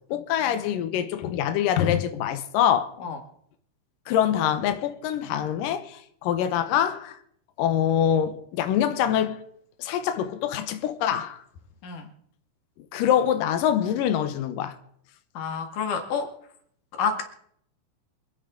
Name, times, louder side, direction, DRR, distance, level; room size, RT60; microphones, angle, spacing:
voice 1, 0.1-2.9 4.1-7.2 7.6-9.4 9.8-11.4 12.9-14.8, left 9 dB, 85° left, 1.9 m, -24 dB
voice 2, 15.3-16.3 17.0-17.2, left 5 dB, 55° left, 3.0 m, -28 dB
27.0 x 10.0 x 3.8 m
omnidirectional pair, 5.3 m